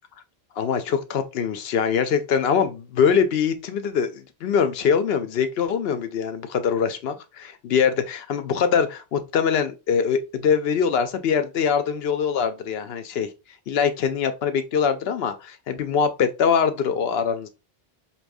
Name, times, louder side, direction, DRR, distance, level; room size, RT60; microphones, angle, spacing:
voice 1, 0.6-13.3 13.7-17.5, left 7 dB, 75° left, 0.8 m, -23 dB
4.7 x 2.9 x 2.6 m
omnidirectional pair, 1.0 m